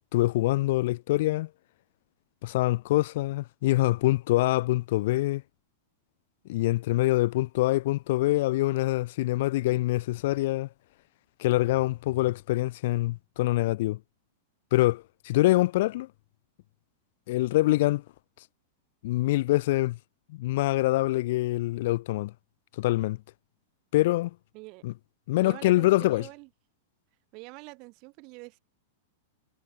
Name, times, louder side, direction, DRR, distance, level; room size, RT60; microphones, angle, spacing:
voice 1, 0.0-1.5 2.4-5.4 6.5-10.7 11.4-14.0 14.7-16.1 17.3-18.0 19.0-20.0 20.3-22.3 22.8-23.2 23.9-24.3 24.8-24.9 25.3-26.3, left 17 dB, 60° left, 0.4 m, -25 dB
voice 2, 24.5-24.9 25.4-26.5 27.3-28.6, right 28 dB, 45° right, 4.4 m, -45 dB
hypercardioid pair, 130°, 0 cm